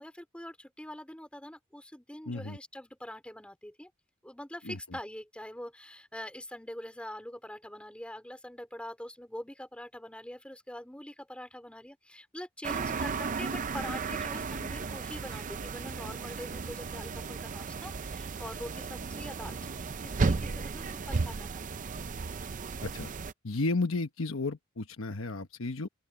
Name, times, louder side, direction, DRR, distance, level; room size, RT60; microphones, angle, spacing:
voice 1, 0.0-3.9 4.2-21.9, left 1 dB, 5° left, 3.6 m, -44 dB
voice 2, 2.3-2.6 4.6-4.8 22.8-23.1 23.4-25.9, left 3 dB, 75° left, 1.2 m, -33 dB
sound 1, 12.6-23.3, right 4 dB, 40° right, 0.5 m, -34 dB
open air
head